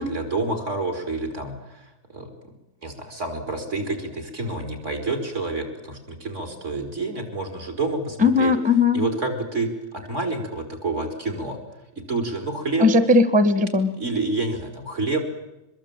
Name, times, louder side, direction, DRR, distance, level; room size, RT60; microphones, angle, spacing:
voice 1, 0.0-2.3 2.8-8.5 8.9-11.6 12.1-12.9 14.0-15.2, right 3 dB, 55° right, 4 dB, 4.9 m, -28 dB
voice 2, 8.2-9.0 12.8-14.0, left 3 dB, 5° right, 11 dB, 1.1 m, -18 dB
24.0 x 22.0 x 8.9 m, 0.93 s
omnidirectional pair, 1.5 m